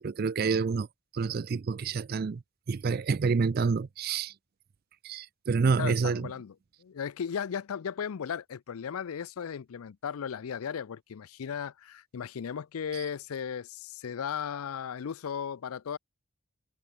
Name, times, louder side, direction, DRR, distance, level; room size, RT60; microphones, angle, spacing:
voice 1, 0.0-0.9 1.1-2.4 2.7-4.3 5.0-6.3 12.9-13.0, right 5 dB, 45° right, 0.4 m, -28 dB
voice 2, 5.8-6.5 6.8-16.0, left 7 dB, 85° left, 0.4 m, -36 dB
head